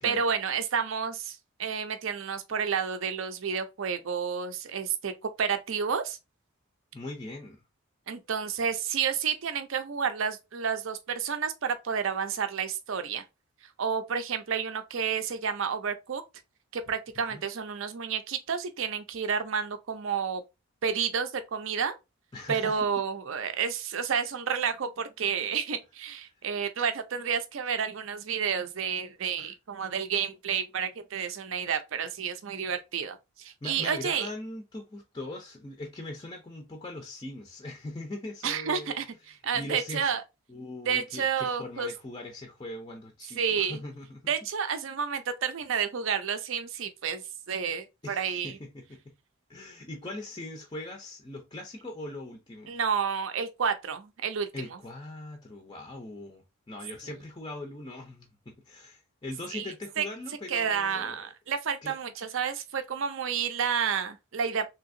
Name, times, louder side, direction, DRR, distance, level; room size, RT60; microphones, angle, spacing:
voice 1, 0.0-5.1 5.4-6.2 8.1-13.2 13.8-16.2 16.7-20.4 20.8-21.9 22.5-34.3 38.4-40.2 40.9-41.9 43.4-43.8 44.3-47.2 47.5-48.6 52.7-54.5 59.5-60.1 60.5-64.6, right 6 dB, 60° right, 0.5 m, -30 dB
voice 2, 6.9-7.6 17.3-17.5 22.3-22.8 29.4-29.5 33.6-38.9 39.5-40.1 40.5-44.3 48.0-49.0 49.5-52.7 54.5-61.2 61.8-62.0, left 2 dB, 20° left, 0.4 m, -41 dB
3.3 x 2.8 x 2.5 m
head